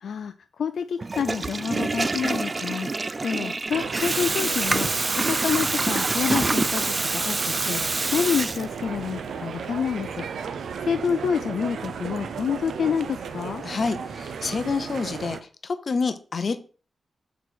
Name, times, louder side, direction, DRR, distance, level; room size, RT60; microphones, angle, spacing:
voice 1, 0.0-10.6 10.9-13.6, left 7 dB, 80° left, 10 dB, 0.3 m, -28 dB
Water tap faucet / Toilet flush, 1.0-9.0, right 3 dB, 30° right, 0.3 m, -26 dB
sound 1, 3.7-15.4, right 6 dB, 85° right, 0.5 m, -35 dB
voice 2, 13.6-16.6, left 4 dB, 50° left, 10 dB, 0.7 m, -28 dB
6.1 x 4.0 x 4.6 m, 0.38 s
wide cardioid pair, 100°, 0 cm